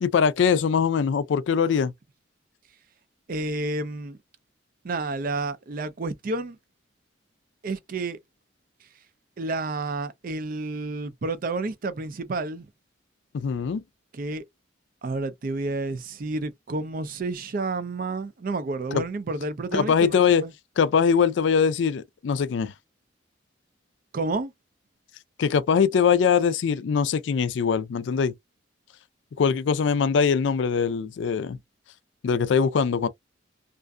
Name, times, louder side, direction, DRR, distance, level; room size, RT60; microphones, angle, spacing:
voice 1, 0.0-1.9 13.3-13.8 18.9-19.0 19.7-20.4 20.8-22.7 25.4-28.3 29.4-31.6 32.2-33.1, left 6 dB, 70° left, 0.3 m, -22 dB
voice 2, 3.3-4.2 4.8-6.6 7.6-8.2 9.4-12.7 14.1-14.4 15.0-20.5 24.1-24.5, right 3 dB, 50° right, 0.4 m, -30 dB
2.5 x 2.4 x 2.2 m
head